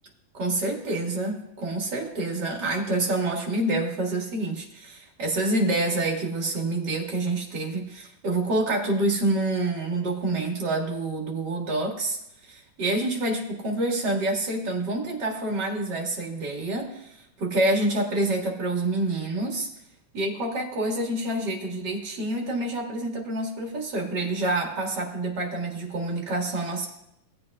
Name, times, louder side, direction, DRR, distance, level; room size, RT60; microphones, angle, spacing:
voice 1, 0.3-12.2 12.4-19.7 20.1-26.9, right 2 dB, 40° right, -1 dB, 2.0 m, -27 dB
18.0 x 8.5 x 2.4 m, 0.81 s
omnidirectional pair, 3.8 m